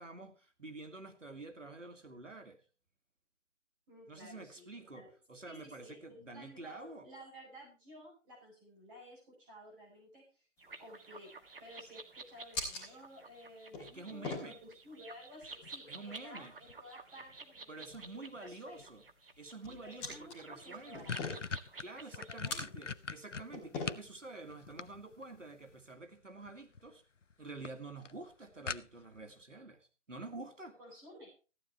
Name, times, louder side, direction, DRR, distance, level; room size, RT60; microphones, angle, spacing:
voice 1, 0.0-2.6 4.1-7.1 13.8-14.6 15.9-16.5 17.7-19.0 19.4-21.0 21.8-27.0 27.4-30.8, right 3 dB, 80° right, 6 dB, 2.1 m, -48 dB
voice 2, 3.9-4.6 4.9-5.1 5.4-6.0 6.3-10.5 10.8-18.9 19.7-21.2 22.0-22.7 30.8-31.3, equal, 15° right, -4 dB, 4.7 m, -54 dB
sound 1, 10.6-25.9, left 3 dB, 5° left, 0.8 m, -48 dB
sound 2, 10.6-22.4, right 4 dB, 50° right, 1.7 m, -52 dB
sound 3, 20.2-20.3 20.6-24.1 24.5-25.4 26.5-26.9 27.2-27.3 27.6-27.7 28.0-28.1 28.7-29.2, left 5 dB, 80° left, 0.8 m, -40 dB
14.5 x 9.4 x 4.4 m, 0.34 s
figure-of-eight pair, 145°, 37 cm